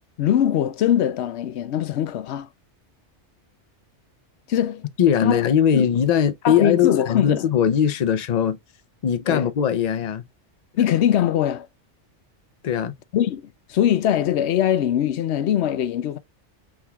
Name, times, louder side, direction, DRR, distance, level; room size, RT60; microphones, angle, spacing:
voice 1, 0.2-2.5 4.5-4.8 5.2-5.4 5.7-5.9 6.4-7.5 9.3-9.5 10.8-11.7 13.1-16.2, left 10 dB, 70° left, 0.8 m, -22 dB
voice 2, 5.0-8.6 9.0-10.2 12.6-12.9, left 8 dB, 45° left, 0.6 m, -20 dB
5.8 x 3.6 x 2.3 m
omnidirectional pair, 1.2 m